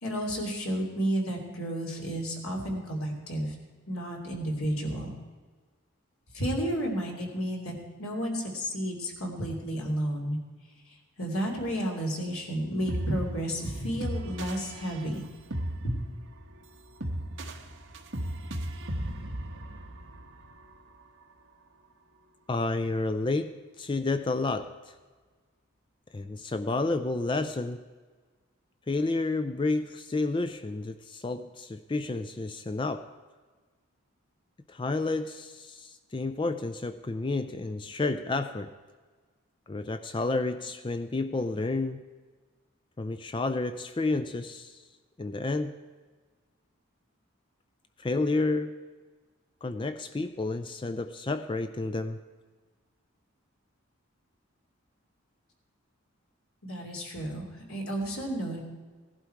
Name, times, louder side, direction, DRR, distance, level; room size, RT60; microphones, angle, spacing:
voice 1, 0.0-3.5 3.9-5.1 6.3-10.4 10.9-15.2 15.8-16.0 56.6-58.6, equal, 85° left, 0 dB, 3.0 m, -32 dB
sound 1, 12.8-21.0, right 1 dB, 60° right, 1.3 m, -37 dB
voice 2, 22.5-25.0 26.1-27.8 28.9-33.1 34.7-38.7 39.7-42.0 43.0-44.8 45.2-45.7 48.0-48.7 49.6-52.2, left 3 dB, 25° left, 10 dB, 0.4 m, -30 dB
17.0 x 11.5 x 4.6 m, 1.4 s
head